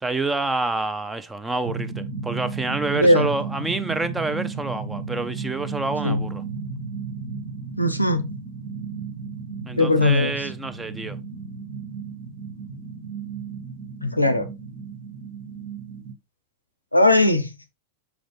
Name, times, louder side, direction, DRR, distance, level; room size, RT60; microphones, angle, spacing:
voice 1, 0.0-6.4 9.7-11.2, right 3 dB, 10° right, 0.6 m, -28 dB
sound 1, 1.6-16.1, right 5 dB, 55° right, 1.6 m, -34 dB
voice 2, 2.9-3.3 6.0-6.2 7.8-8.3 9.8-10.5 14.0-14.5 16.9-17.5, left 1 dB, 85° left, 0.6 m, -19 dB
6.1 x 5.0 x 3.2 m
figure-of-eight pair, 90°, 0 cm